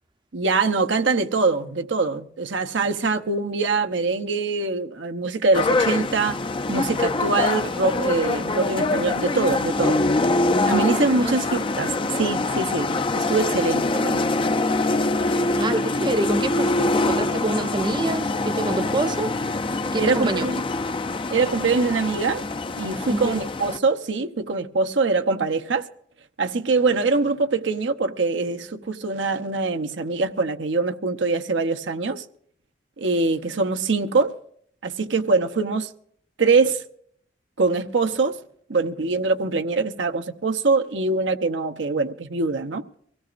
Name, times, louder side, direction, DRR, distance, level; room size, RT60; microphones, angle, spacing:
voice 1, 0.3-6.4 6.7-10.0 10.6-14.2 20.0-20.6 21.3-22.4 22.8-25.9 26.4-32.2 33.0-34.3 34.8-35.9 36.4-36.8 37.6-38.4 38.7-42.8, right 3 dB, 85° right, 0.9 m, -23 dB
sound 1, 5.5-23.8, left 2 dB, 30° left, 0.5 m, -24 dB
voice 2, 15.3-19.3 19.9-20.5 23.1-23.4, right 2 dB, 25° right, 0.6 m, -26 dB
24.0 x 16.5 x 2.6 m
head